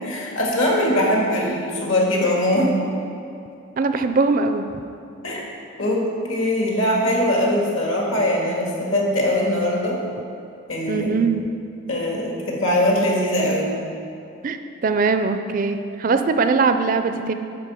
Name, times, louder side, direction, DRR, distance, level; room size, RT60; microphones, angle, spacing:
voice 1, 0.0-2.7 5.2-5.4 5.8-10.0 10.7-11.1 11.9-13.7, left 1 dB, 70° left, -2 dB, 1.9 m, -21 dB
voice 2, 3.8-4.7 10.9-11.4 14.4-14.6 14.8-17.3, right 4 dB, 40° right, 8 dB, 0.4 m, -21 dB
10.5 x 4.2 x 6.9 m, 2.6 s
head